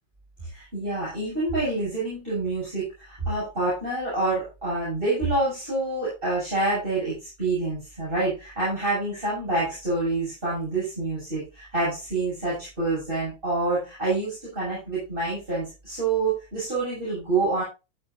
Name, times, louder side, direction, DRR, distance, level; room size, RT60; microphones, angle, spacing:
voice 1, 0.5-17.6, right 2 dB, 25° right, -7 dB, 7.8 m, -27 dB
15.5 x 7.4 x 2.7 m, 0.28 s
omnidirectional pair, 2.3 m